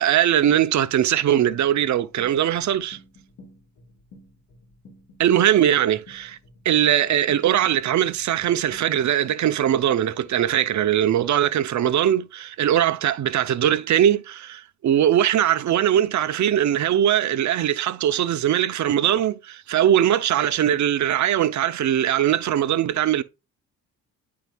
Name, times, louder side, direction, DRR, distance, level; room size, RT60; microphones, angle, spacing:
voice 1, 0.0-3.0 5.2-6.4 6.6-23.2, right 10 dB, 55° right, 0.8 m, -21 dB
sound 1, 1.5-9.2, left 1 dB, 55° left, 2.6 m, -52 dB
9.0 x 4.8 x 2.4 m
supercardioid pair, 65°, 34 cm